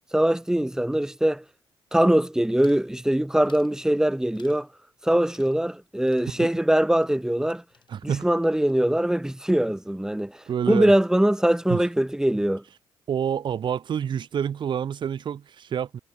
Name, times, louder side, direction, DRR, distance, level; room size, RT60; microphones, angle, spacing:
voice 1, 0.1-1.4 1.9-4.7 5.0-7.6 8.0-12.6, right 1 dB, 5° right, 0.7 m, -22 dB
sound 1, 2.6-2.9 3.5-3.8 4.4-4.7 5.3-5.8 6.1-8.4 8.6-9.2 9.5-10.0, left 6 dB, 55° left, 5.4 m, -59 dB
voice 2, 7.9-8.3 10.5-10.9 11.7-11.8 13.1-16.0, right 8 dB, 55° right, 0.7 m, -28 dB
hypercardioid pair, 45°, 10 cm